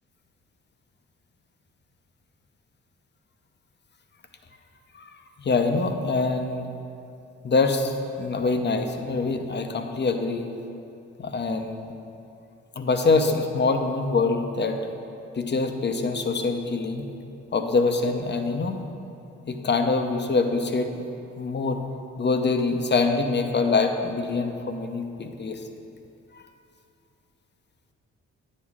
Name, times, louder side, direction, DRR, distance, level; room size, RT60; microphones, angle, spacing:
voice 1, 5.4-6.7 7.4-10.5 11.2-11.9 12.8-14.9 15.3-17.1 17.5-18.8 19.5-21.0 21.4-21.8 22.2-25.6 26.3-26.4, left 3 dB, 35° left, 6 dB, 0.8 m, -24 dB
9.1 x 6.5 x 3.6 m, 2.7 s
supercardioid pair, 50°, 30 cm